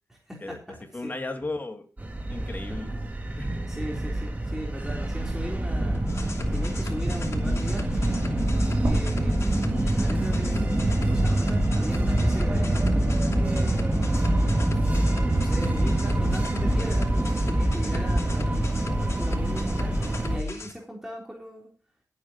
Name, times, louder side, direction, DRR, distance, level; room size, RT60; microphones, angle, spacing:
voice 1, 0.1-0.8 1.0-1.1 3.7-8.1 8.6-12.9 13.3-14.2 14.9-21.7, equal, 5° right, -2 dB, 3.7 m, -39 dB
voice 2, 0.9-1.9 2.3-3.0 3.4-3.7, left 2 dB, 30° left, 4 dB, 2.6 m, -35 dB
sound 1, 2.0-20.4, right 1 dB, 25° right, 2.4 m, -25 dB
sound 2, 5.9-20.7, left 3 dB, 50° left, 2.9 m, -34 dB
sound 3, 8.8-13.0 13.4-13.5 14.9-15.0, right 1 dB, 45° right, 3.0 m, -36 dB
20.0 x 8.7 x 3.0 m, 0.37 s
cardioid pair, 65°, 6 cm